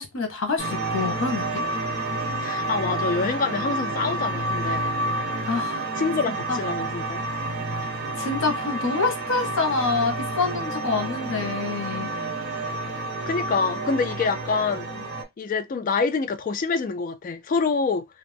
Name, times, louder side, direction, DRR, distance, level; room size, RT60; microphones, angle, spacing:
voice 1, 0.0-1.6 5.5-5.9 6.5-6.6 8.2-12.1, left 4 dB, 85° left, 0.9 m, -26 dB
sound 1, 0.6-15.2, right 2 dB, 55° right, 1.1 m, -29 dB
voice 2, 2.4-4.9 6.0-7.3 13.3-14.9 15.4-18.1, left 4 dB, 45° left, 0.3 m, -26 dB
2.5 x 2.0 x 3.3 m
head